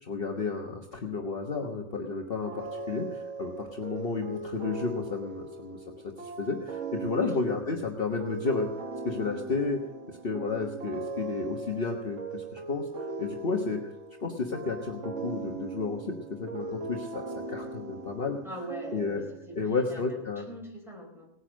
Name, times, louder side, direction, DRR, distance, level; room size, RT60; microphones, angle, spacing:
voice 1, 0.0-8.7 9.0-9.8 10.1-12.9 13.2-13.8 14.2-18.4 18.9-19.2 19.5-20.5, left 4 dB, 45° left, 1 dB, 1.4 m, -32 dB
sound 1, 2.5-19.6, right 3 dB, 65° right, 1.6 m, -39 dB
voice 2, 18.4-19.2 19.5-20.2 20.5-21.3, right 1 dB, ahead, -2 dB, 5.0 m, -41 dB
18.5 x 9.8 x 6.4 m, 0.77 s
omnidirectional pair, 1.3 m